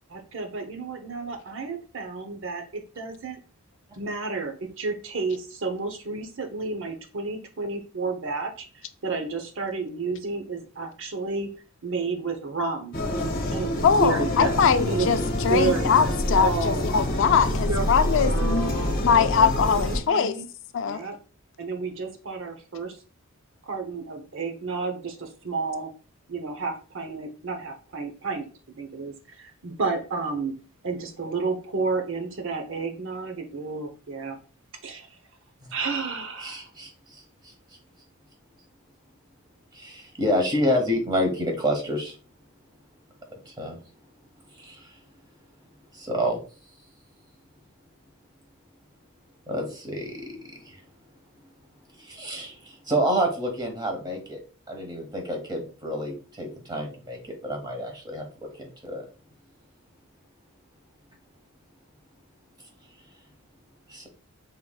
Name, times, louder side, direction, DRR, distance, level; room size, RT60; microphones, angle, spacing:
voice 1, 0.1-3.4 4.0-11.5 11.8-13.0 13.5-16.8 17.7-19.0 19.7-20.5 20.8-21.1 21.6-23.0 23.6-25.9 26.3-28.5 28.8-30.5 30.8-34.4 34.8-35.2 35.7-36.6, right 4 dB, 60° right, 0.8 m, -31 dB
sound 1, 12.9-20.0, left 1 dB, 40° left, 0.9 m, -26 dB
voice 2, 13.8-18.7 19.0-20.4 20.7-21.0, left 6 dB, 55° left, 0.4 m, -22 dB
voice 3, 36.4-37.5 39.7-42.1 43.4-43.8 44.5-44.9 45.9-46.4 49.5-50.4 50.6-50.8 52.0-54.4 54.7-58.2 58.6-59.0 63.9-64.1, equal, 20° right, 1.1 m, -28 dB
5.5 x 3.6 x 2.3 m
head